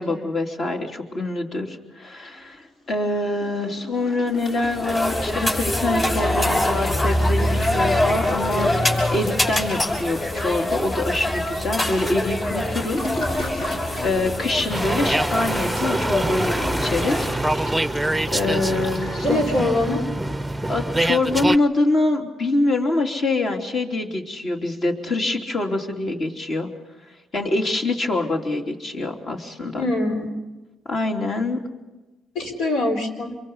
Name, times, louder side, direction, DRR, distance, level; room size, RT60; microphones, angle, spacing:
voice 1, 0.0-13.2 13.7-13.8 14.0-17.3 17.6-18.0 18.3-19.7 20.7-26.7 27.3-29.8 30.9-31.6, left 2 dB, 50° left, 2 dB, 3.4 m, -25 dB
Toilet flush, 2.0-2.9 3.1-19.6, left 1 dB, 65° left, 4.9 m, -38 dB
sound 1, 4.4-17.3, left 1 dB, 35° left, 6.4 m, -24 dB
sound 2, 14.7-21.6, right 1 dB, 5° right, 0.7 m, -25 dB
voice 2, 19.2-20.1 29.8-30.3 32.3-33.3, left 2 dB, 85° left, 4 dB, 4.2 m, -23 dB
27.0 x 23.5 x 5.7 m, 1.1 s
cardioid pair, 90°, 0 cm